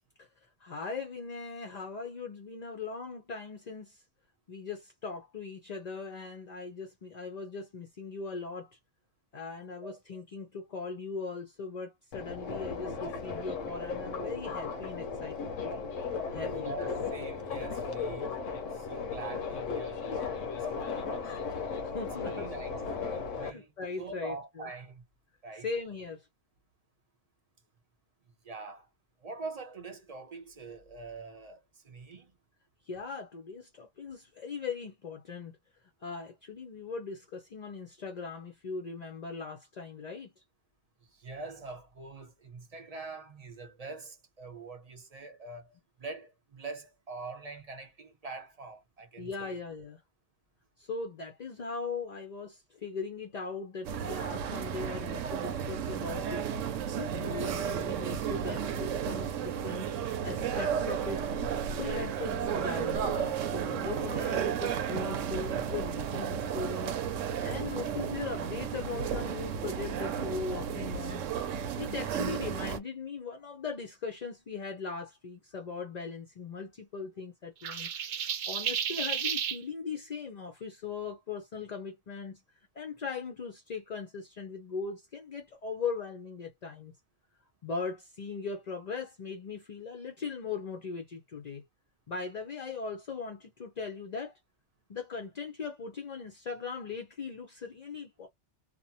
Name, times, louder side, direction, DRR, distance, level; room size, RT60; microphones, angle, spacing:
voice 1, 0.6-4.0 4.5-8.8 9.3-15.7 16.3-16.8 21.8-22.5 23.4-24.7 25.5-26.3 32.8-35.6 36.0-40.3 49.2-50.0 50.8-56.5 57.0-59.9 60.2-61.2 61.7-67.0 67.4-71.2 71.8-77.9 78.3-82.4 82.7-87.0 87.6-91.6 92.1-94.3 94.9-98.3, left 5 dB, 45° left, 0.6 m, -39 dB
Subway metro underground, 12.1-23.5, left 5 dB, 85° left, 1.1 m, -36 dB
voice 2, 16.5-18.4 18.7-21.3 22.2-22.7 23.0-23.7 24.0-25.0 25.4-25.7 28.4-28.9 29.2-32.4 41.1-49.6, right 3 dB, 35° right, 0.9 m, -44 dB
sound 1, 53.8-72.8, right 8 dB, 90° right, 0.9 m, -33 dB
sound 2, 77.6-79.6, right 8 dB, 55° right, 0.5 m, -32 dB
2.9 x 2.1 x 2.7 m
omnidirectional pair, 1.3 m